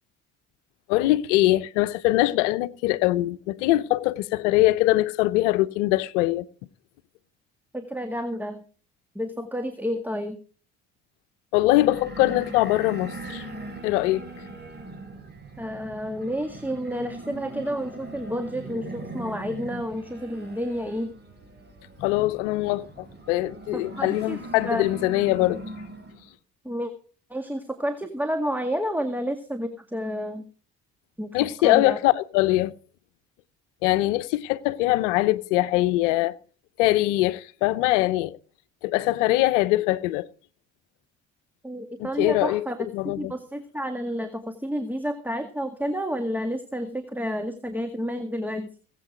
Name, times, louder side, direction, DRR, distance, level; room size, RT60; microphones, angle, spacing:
voice 1, 0.9-6.4 11.5-13.4 13.8-14.2 22.0-25.6 31.3-32.7 33.8-36.4 36.8-38.4 38.8-40.3 42.0-42.7 42.9-43.3, left 17 dB, 85° left, 0.8 m, -22 dB
voice 2, 7.7-8.6 9.2-10.4 15.6-21.1 23.7-24.8 26.6-26.9 27.3-30.5 31.2-32.0 41.6-48.7, equal, 5° right, 1.9 m, -30 dB
sound 1, 11.7-26.3, right 2 dB, 30° right, 6.7 m, -40 dB
19.0 x 8.4 x 5.0 m
hypercardioid pair, 55°, 36 cm